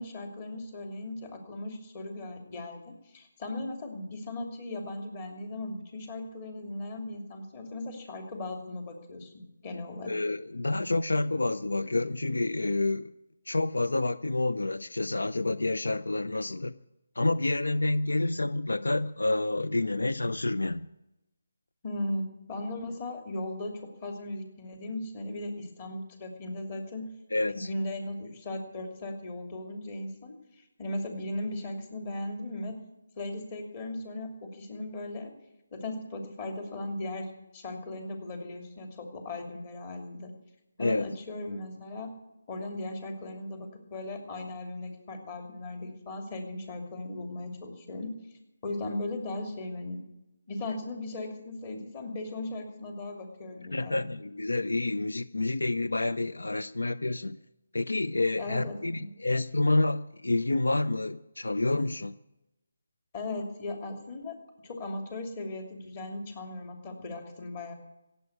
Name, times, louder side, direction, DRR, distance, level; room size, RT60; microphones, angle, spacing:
voice 1, 0.0-9.3 9.6-10.2 21.8-27.1 27.5-32.8 33.2-35.3 35.7-40.3 40.8-42.1 42.5-48.2 48.6-50.0 50.5-54.1 58.4-59.1 63.1-67.7, left 2 dB, 30° left, 3 dB, 2.8 m, -37 dB
voice 2, 10.0-13.1 13.5-16.7 17.2-20.9 27.3-27.7 40.8-41.1 53.7-57.4 57.7-62.1, left 2 dB, 85° left, 14 dB, 0.5 m, -28 dB
16.5 x 8.1 x 9.4 m, 0.94 s
figure-of-eight pair, 160°, 0 cm